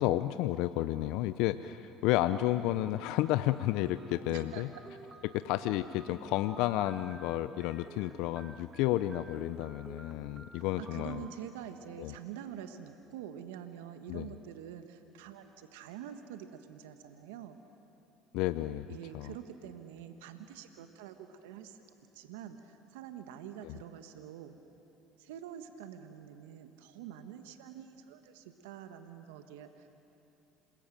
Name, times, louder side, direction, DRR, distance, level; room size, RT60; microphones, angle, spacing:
voice 1, 0.0-4.7 5.2-11.3 12.0-12.1 14.1-14.3 18.3-18.9 19.1-19.3 23.6-23.8, left 15 dB, 70° left, 12 dB, 0.6 m, -31 dB
sound 1, 3.3-11.4, right 3 dB, 30° right, 2.3 m, -53 dB
voice 2, 4.3-4.6 10.5-17.6 18.9-21.8 22.1-24.6 25.2-29.9, right 9 dB, 80° right, 8 dB, 1.3 m, -46 dB
27.0 x 21.0 x 9.1 m, 2.9 s
hypercardioid pair, 75°, 0 cm